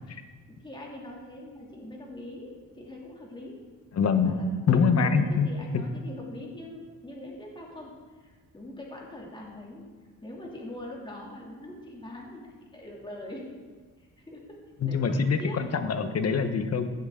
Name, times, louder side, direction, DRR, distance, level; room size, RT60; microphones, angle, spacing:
voice 1, 0.5-3.6 4.1-9.9 10.2-13.4 14.0-15.6, left 1 dB, 15° left, -3 dB, 2.8 m, -43 dB
voice 2, 3.9-4.4 4.7-5.5 14.8-16.9, left 5 dB, 50° left, 8 dB, 1.1 m, -24 dB
16.0 x 8.0 x 3.8 m, 1.4 s
cardioid pair, 100°, 32 cm